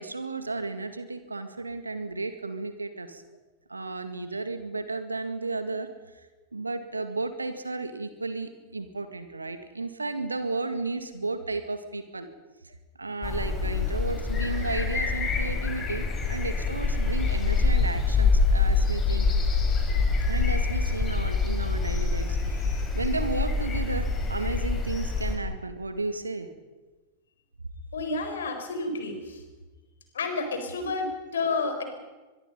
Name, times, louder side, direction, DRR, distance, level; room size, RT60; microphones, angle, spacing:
voice 1, 0.0-3.2 3.7-5.9 6.5-12.3 13.0-19.3 20.3-26.5, right 3 dB, 80° right, 9 dB, 2.0 m, -33 dB
sound 1, 13.2-25.3, left 4 dB, 25° left, 5.7 m, -25 dB
voice 2, 27.9-29.4 30.1-31.8, left 3 dB, 65° left, 6 dB, 4.4 m, -30 dB
24.0 x 22.5 x 5.4 m, 1.2 s
figure-of-eight pair, 90°, 0 cm